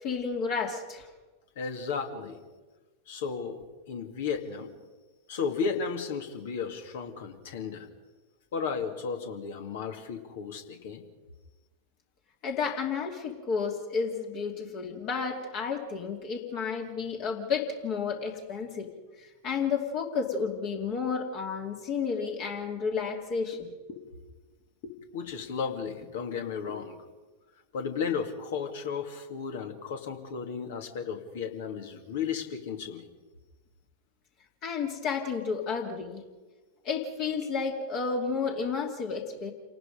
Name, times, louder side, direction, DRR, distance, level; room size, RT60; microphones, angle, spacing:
voice 1, 0.0-1.1 12.4-18.9 19.2-24.0 24.8-24.9 26.7-26.8 34.6-36.2 36.8-39.5, left 5 dB, 40° left, 1 dB, 2.7 m, -31 dB
voice 2, 1.6-2.4 3.1-4.7 5.3-7.9 8.5-11.0 25.1-27.0 27.7-33.1, left 6 dB, 55° left, 5 dB, 2.5 m, -34 dB
28.5 x 18.5 x 5.2 m, 1.2 s
figure-of-eight pair, 90°, 0 cm